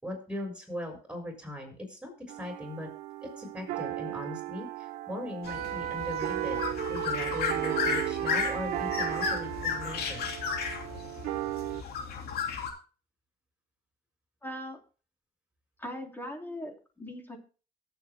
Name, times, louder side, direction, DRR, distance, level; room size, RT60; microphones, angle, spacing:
voice 1, 0.0-2.9 3.2-6.6 6.9-10.3, left 1 dB, 5° right, 2 dB, 6.2 m, -39 dB
sound 1, 2.3-11.8, right 15 dB, 85° right, 1.2 m, -37 dB
sound 2, 5.4-12.7, left 6 dB, 65° left, 3.2 m, -34 dB
sound 3, 5.5-9.4, right 11 dB, 65° right, 1.3 m, -34 dB
voice 2, 14.4-14.8 15.8-17.4, left 1 dB, 10° left, 2 dB, 3.3 m, -40 dB
23.5 x 8.0 x 2.2 m, 0.35 s
cardioid pair, 110°, 17 cm